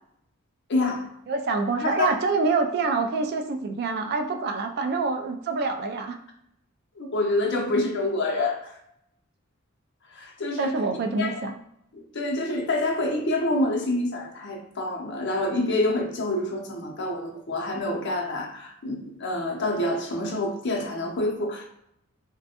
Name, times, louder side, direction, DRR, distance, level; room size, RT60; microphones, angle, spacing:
voice 1, 0.7-1.0 1.8-2.1 7.0-8.8 10.1-10.7 11.2-11.3 11.9-21.7, left 2 dB, 55° left, 1 dB, 0.6 m, -27 dB
voice 2, 1.3-6.2 10.6-11.5, right 3 dB, 50° right, 4 dB, 0.3 m, -26 dB
3.2 x 2.1 x 2.8 m, 0.75 s
head